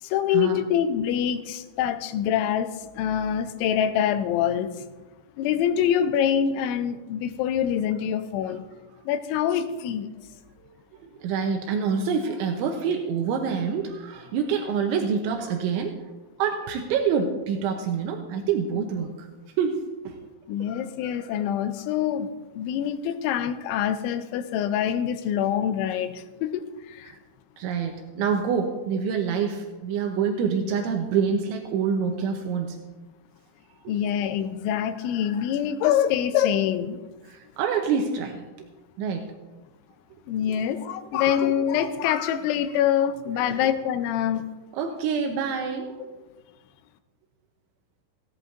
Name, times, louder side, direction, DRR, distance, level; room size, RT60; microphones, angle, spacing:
voice 1, 0.0-4.8 5.4-8.6 9.1-10.1 20.5-27.1 33.9-37.0 40.3-44.5, left 9 dB, 85° left, 9 dB, 3.0 m, -25 dB
voice 2, 10.9-15.9 16.4-19.1 19.6-19.8 20.0-20.2 27.1-27.2 27.6-32.8 37.3-38.5 39.0-39.2 41.4-41.5 43.4-43.6 44.7-46.0, right 6 dB, 80° right, 4 dB, 3.1 m, -26 dB
16.0 x 16.0 x 2.6 m, 1.2 s
omnidirectional pair, 5.5 m